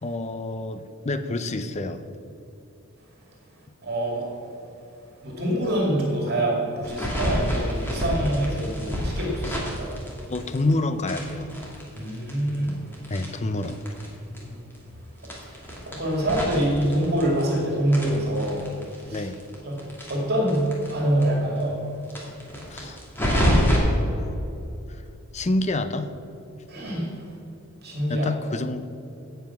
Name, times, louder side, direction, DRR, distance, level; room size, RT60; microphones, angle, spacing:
voice 1, 0.0-2.0 9.4-9.6 10.3-11.5 13.1-13.8 19.1-19.4 22.7-24.4 24.9-25.0 25.3-26.1 28.1-28.9, left 2 dB, 30° left, 10 dB, 0.6 m, -28 dB
voice 2, 3.8-4.3 5.2-9.9 12.0-12.8 14.2-14.6 15.5-18.6 19.0-19.3 19.7-21.8 26.7-27.1 27.8-28.3, right 1 dB, 50° right, -2 dB, 2.4 m, -25 dB
sound 1, 6.8-10.7 11.0-14.1 14.3-14.4 14.7-14.8 15.2-17.6 17.9-20.9 21.2-21.3 21.6-21.7 22.0-23.8, equal, 10° left, 2.3 m, -27 dB
16.5 x 5.6 x 5.9 m, 2.8 s
head